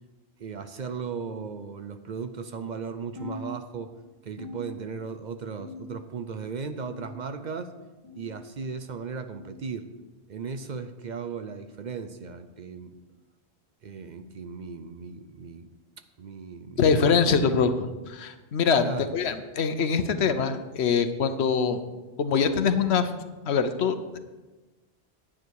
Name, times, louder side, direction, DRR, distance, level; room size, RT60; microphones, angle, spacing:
voice 1, 0.4-3.9 4.2-7.7 8.2-9.9 10.3-12.9 13.8-15.7 16.2-17.5 18.8-19.1, right 5 dB, 50° right, 9 dB, 0.7 m, -36 dB
sound 1, 3.2-4.0 4.4-5.2 5.6-6.2 6.8-7.4 8.0-8.4 9.3-9.5 10.5-10.7 11.7-11.9 12.9-13.1 14.1-14.3 15.4-15.5 16.6-16.7 17.8-17.9, left 2 dB, 20° right, 3.2 m, -43 dB
voice 2, 16.8-17.7 18.1-18.9 19.1-21.8 22.2-23.1 23.5-24.2, left 6 dB, 80° left, 9 dB, 1.1 m, -23 dB
9.8 x 9.5 x 4.7 m, 1.2 s
omnidirectional pair, 1.1 m